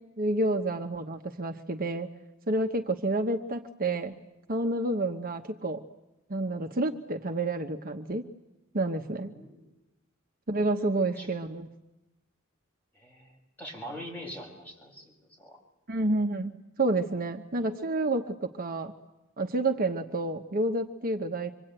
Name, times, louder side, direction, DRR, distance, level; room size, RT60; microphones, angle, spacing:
voice 1, 0.2-2.1 2.5-4.2 4.5-5.8 6.3-8.2 8.7-9.3 10.5-11.7 15.9-18.9 19.4-21.5, right 2 dB, 45° right, 5 dB, 1.0 m, -29 dB
voice 2, 9.3-9.7 11.2-11.3 12.9-15.6, equal, 10° left, -2 dB, 7.1 m, -43 dB
25.5 x 24.0 x 9.0 m, 0.99 s
head